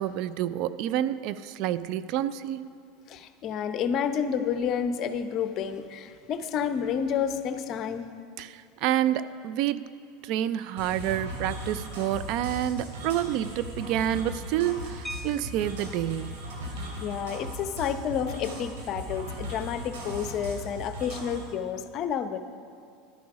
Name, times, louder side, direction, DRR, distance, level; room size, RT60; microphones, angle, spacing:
voice 1, 0.0-2.7 8.4-9.8 10.2-16.3, right 11 dB, 60° right, 15 dB, 0.4 m, -28 dB
voice 2, 3.1-8.0 17.0-22.4, left 7 dB, 45° left, 10 dB, 0.7 m, -30 dB
sound 1, 10.8-21.4, equal, 85° right, 2.5 m, -38 dB
sound 2, 15.0-16.1 17.6-17.7 18.0-18.2 18.6-18.9, equal, 10° left, 0.4 m, -42 dB
12.0 x 10.5 x 4.9 m, 2.3 s
supercardioid pair, 110°, 0 cm